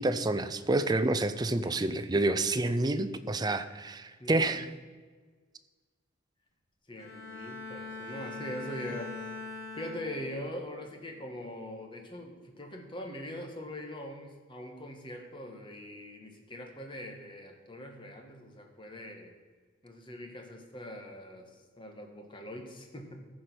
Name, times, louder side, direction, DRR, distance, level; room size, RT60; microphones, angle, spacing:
voice 1, 0.0-4.7, right 2 dB, 20° right, 11 dB, 0.5 m, -28 dB
voice 2, 1.5-1.9 4.2-4.6 6.9-9.1 9.7-19.3 19.8-21.5 21.8-23.2, left 1 dB, 25° left, 3 dB, 1.4 m, -42 dB
Bowed string instrument, 7.0-10.5 11.0-11.4, left 3 dB, 80° left, 1.5 m, -42 dB
14.0 x 5.1 x 6.0 m, 1.5 s
head